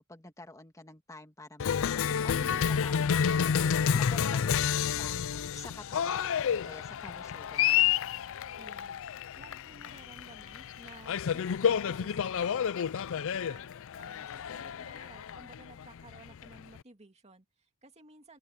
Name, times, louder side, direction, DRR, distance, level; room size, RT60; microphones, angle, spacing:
voice 1, 0.0-3.7 3.9-5.2 5.5-8.0, left 1 dB, 15° left, 2.0 m, -48 dB
Cheering, 1.6-16.8, left 8 dB, 60° left, 0.4 m, -30 dB
voice 2, 8.6-12.5 12.9-13.7 14.0-18.4, right 2 dB, 30° right, 2.4 m, -55 dB
open air
head